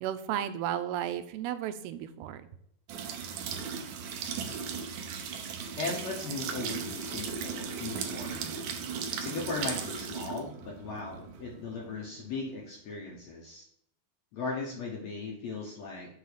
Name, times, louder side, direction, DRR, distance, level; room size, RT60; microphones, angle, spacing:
voice 1, 0.0-2.5, right 10 dB, 90° right, 10 dB, 2.6 m, -34 dB
sound 1, 2.9-12.6, right 6 dB, 70° right, 2.1 m, -37 dB
voice 2, 5.8-8.5 9.1-13.7 14.3-16.2, left 4 dB, 70° left, -2 dB, 1.7 m, -38 dB
6.7 x 4.0 x 6.5 m, 0.72 s
omnidirectional pair, 4.4 m